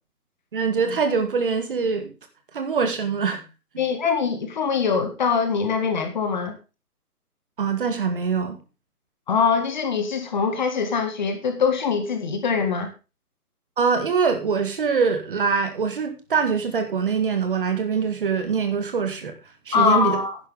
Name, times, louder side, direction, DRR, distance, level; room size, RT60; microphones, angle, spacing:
voice 1, 0.5-2.1 2.5-3.4 7.6-8.6 13.8-19.3 19.7-20.2, right 5 dB, 35° right, 7 dB, 1.8 m, -23 dB
voice 2, 3.8-6.6 9.3-12.9 19.7-20.4, left 5 dB, 30° left, 6 dB, 1.8 m, -23 dB
11.0 x 10.5 x 3.5 m, 0.30 s
figure-of-eight pair, 150°, 47 cm